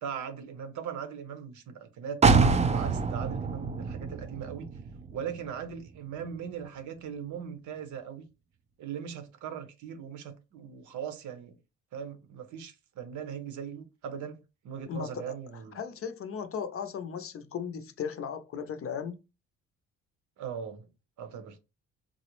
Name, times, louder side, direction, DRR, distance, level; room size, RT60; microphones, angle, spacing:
voice 1, 0.0-2.2 2.6-4.7 5.1-8.3 8.8-11.6 11.9-14.4 14.6-15.8 20.4-20.9 21.2-21.6, right 7 dB, 75° right, 0.7 m, -39 dB
Construction slap, 2.2-6.0 6.3-6.4, right 4 dB, 25° right, 0.3 m, -26 dB
voice 2, 14.9-15.4 15.7-19.2, left 7 dB, 50° left, 0.5 m, -36 dB
3.7 x 2.0 x 3.0 m
cardioid pair, 90°, 30 cm